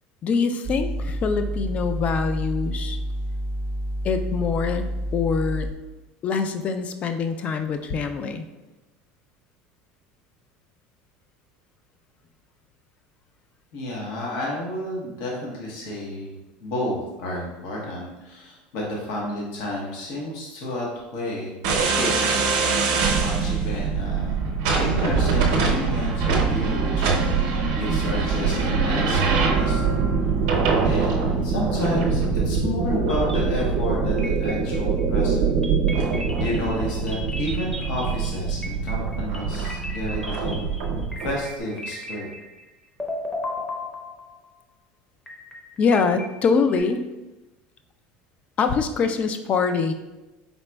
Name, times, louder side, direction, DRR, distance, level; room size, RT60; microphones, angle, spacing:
voice 1, 0.2-3.0 4.0-4.9 5.1-5.7 6.2-8.5 45.8-47.0 48.6-49.9, left 5 dB, 35° left, 8 dB, 0.4 m, -24 dB
sound 1, 0.6-5.7, equal, 40° right, 0.4 m, -29 dB
voice 2, 13.7-22.4 22.7-24.4 24.7-27.1 27.7-29.8 30.8-35.5 36.0-36.1 36.4-40.5 41.2-42.3, left 1 dB, 70° left, -3 dB, 1.1 m, -31 dB
sound 2, 21.6-41.3, right 5 dB, 80° right, 0.7 m, -23 dB
sound 3, 33.1-33.9 34.2-35.0 35.6-42.7 43.0-44.5 45.3-46.8, left 1 dB, 10° left, 0.7 m, -36 dB
4.0 x 4.0 x 2.2 m, 1.0 s
supercardioid pair, 125°, 4 cm